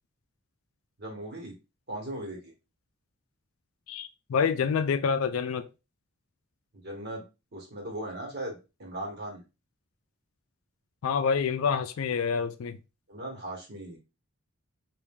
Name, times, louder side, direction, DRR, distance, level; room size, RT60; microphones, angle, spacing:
voice 1, 1.0-1.5 1.9-2.5 6.8-7.2 7.5-9.4 13.1-14.0, right 1 dB, 50° right, 1.4 m, -38 dB
voice 2, 3.9-5.7 11.0-12.8, left 6 dB, 75° left, 0.4 m, -27 dB
3.4 x 2.6 x 3.7 m
head